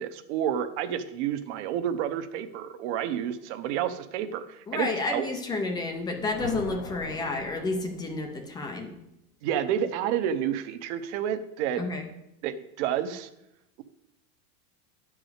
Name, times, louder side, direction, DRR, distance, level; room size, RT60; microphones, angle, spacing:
voice 1, 0.0-5.3 9.4-11.8 12.4-13.3, right 9 dB, 50° right, 9 dB, 0.9 m, -30 dB
voice 2, 4.7-9.0 11.8-12.1, left 3 dB, 10° left, 4 dB, 0.4 m, -30 dB
sound 1, 5.9-8.5, left 6 dB, 85° left, 1.4 m, -41 dB
10.5 x 4.9 x 8.0 m, 0.84 s
supercardioid pair, 165°, 46 cm